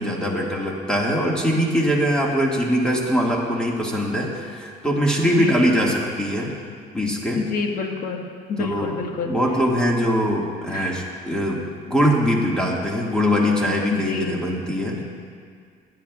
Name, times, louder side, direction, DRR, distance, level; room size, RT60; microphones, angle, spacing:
voice 1, 0.0-6.5 6.9-7.4 8.6-9.0 9.3-15.0, equal, 5° left, -3 dB, 1.7 m, -22 dB
voice 2, 7.3-8.2 8.5-9.3 10.7-10.9 13.9-14.4 14.9-15.0, left 4 dB, 55° left, 2 dB, 1.4 m, -27 dB
23.0 x 9.5 x 2.3 m, 2.1 s
cardioid pair, 110°, 17 cm